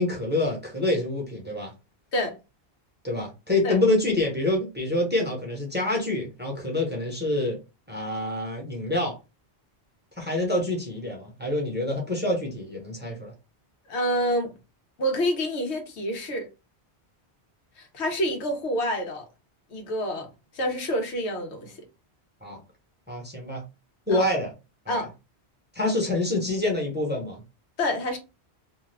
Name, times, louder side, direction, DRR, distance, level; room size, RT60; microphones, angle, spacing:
voice 1, 0.0-1.7 3.0-7.6 7.9-9.2 10.2-13.3 22.4-22.6 23.1-23.6 24.1-24.5 24.9-25.0 25.7-27.4, left 2 dB, 10° right, 0.8 m, -26 dB
voice 2, 13.9-14.5 15.0-16.5 17.8-19.3 19.7-21.8 24.1-24.2 24.9-25.1 27.8-28.2, equal, 80° left, 1.1 m, -28 dB
2.6 x 2.4 x 3.2 m
omnidirectional pair, 1.1 m